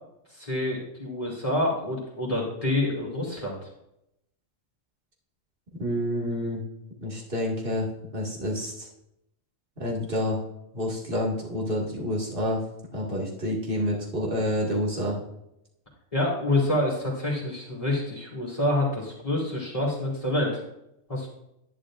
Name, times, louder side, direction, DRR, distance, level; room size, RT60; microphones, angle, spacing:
voice 1, 0.3-3.6 16.1-20.6 21.1-21.3, left 1 dB, 25° left, -5 dB, 2.7 m, -27 dB
voice 2, 5.8-6.6 7.0-7.9 8.1-8.9 9.8-10.4 10.7-12.6 12.9-15.2, left 1 dB, 45° right, -3 dB, 2.2 m, -28 dB
11.0 x 10.0 x 2.5 m, 0.83 s
omnidirectional pair, 1.3 m